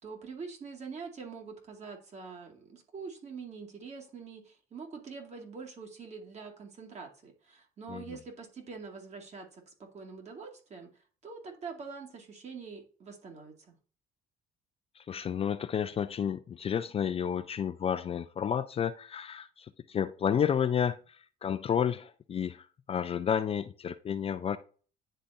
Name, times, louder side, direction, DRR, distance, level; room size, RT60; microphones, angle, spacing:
voice 1, 0.0-10.9 11.2-13.8, right 5 dB, 40° right, 2.2 m, -45 dB
voice 2, 15.0-24.6, left 8 dB, 35° left, 0.4 m, -31 dB
10.0 x 3.9 x 2.7 m
cardioid pair, 110°, 17 cm